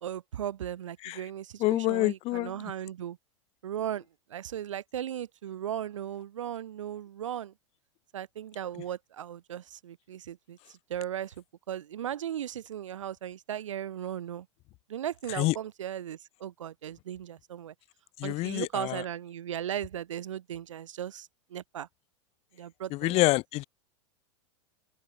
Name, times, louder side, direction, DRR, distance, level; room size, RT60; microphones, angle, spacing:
voice 1, 0.0-3.2 3.6-4.0 4.3-7.5 8.1-10.6 10.9-11.3 11.7-14.5 14.9-17.7 18.2-21.9 22.5-23.2, right 10 dB, 80° right, 0.6 m, -37 dB
voice 2, 1.6-2.5 15.3-15.5 18.2-19.0 22.9-23.6, left 20 dB, 40° left, 0.6 m, -27 dB
open air
hypercardioid pair, 95°, 16 cm